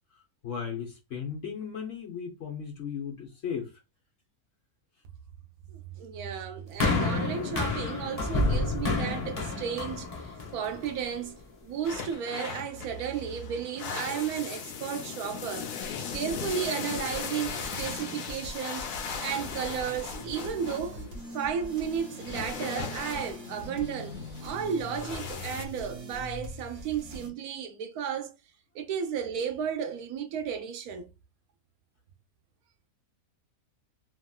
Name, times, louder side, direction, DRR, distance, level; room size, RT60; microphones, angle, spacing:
voice 1, 0.1-3.8, left 7 dB, 55° left, 0.9 m, -36 dB
voice 2, 5.7-11.3 11.6-15.7 16.1-18.9 19.2-21.0 21.3-28.3 28.7-31.1, right 8 dB, 80° right, 1.0 m, -33 dB
sound 1, 6.8-11.1 11.9-12.0, left 2 dB, 35° left, 0.6 m, -29 dB
sound 2, 11.8-25.6, left 6 dB, 85° left, 1.2 m, -38 dB
sound 3, 15.8-27.3, equal, 45° right, 1.0 m, -43 dB
2.9 x 2.9 x 2.2 m
omnidirectional pair, 1.6 m